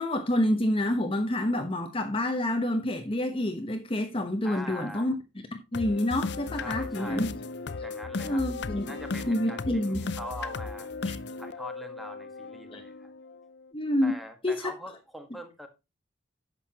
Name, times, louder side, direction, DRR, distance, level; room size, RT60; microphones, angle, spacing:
voice 1, 0.0-5.1 5.5-7.3 8.2-8.9 9.3-10.1 12.7-12.8 13.7-14.2 14.4-14.7, left 1 dB, 30° left, 1.0 m, -28 dB
voice 2, 4.4-5.1 6.6-7.3 7.8-8.4 8.9-10.9 11.4-13.1 14.0-15.7, equal, ahead, 1.6 m, -43 dB
sound 1, 5.7-13.7, left 3 dB, 60° left, 0.6 m, -36 dB
11.0 x 8.0 x 2.9 m
head